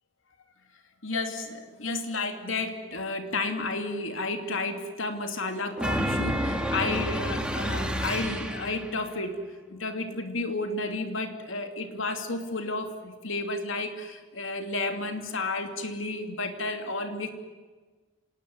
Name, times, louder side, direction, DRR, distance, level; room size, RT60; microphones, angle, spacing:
voice 1, 1.0-9.4 9.7-17.3, left 2 dB, 85° left, 6 dB, 2.8 m, -32 dB
sound 1, 5.8-9.0, equal, 5° right, 2.2 m, -29 dB
27.0 x 19.0 x 9.5 m, 1.4 s
head